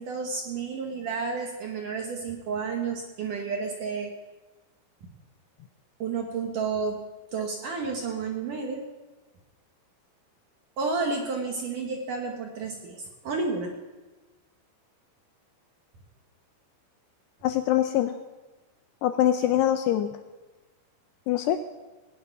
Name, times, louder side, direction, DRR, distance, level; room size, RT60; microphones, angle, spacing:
voice 1, 0.0-4.1 6.0-7.0 7.3-8.8 10.8-13.0 13.2-13.7, right 4 dB, 60° right, 1 dB, 2.3 m, -31 dB
voice 2, 17.4-18.1 19.0-20.1 21.3-21.6, left 12 dB, 80° left, 8 dB, 2.5 m, -23 dB
19.5 x 8.0 x 9.4 m, 1.2 s
omnidirectional pair, 5.4 m